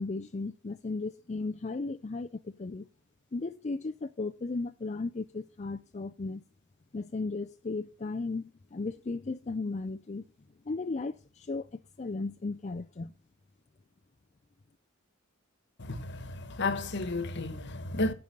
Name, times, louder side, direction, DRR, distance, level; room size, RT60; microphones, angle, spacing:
voice 1, 0.0-2.8 3.3-6.4 6.9-10.2 10.7-13.1, left 3 dB, 30° left, 0.5 m, -35 dB
voice 2, 15.8-18.1, left 2 dB, 55° left, 1.3 m, -32 dB
15.5 x 5.4 x 6.7 m
head